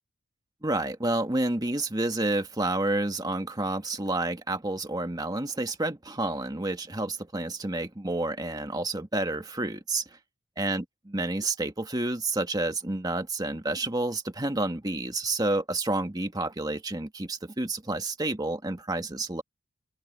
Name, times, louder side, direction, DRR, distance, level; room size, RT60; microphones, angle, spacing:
voice 1, 0.6-10.1 10.6-19.4, right 2 dB, 20° right, 1.5 m, -29 dB
head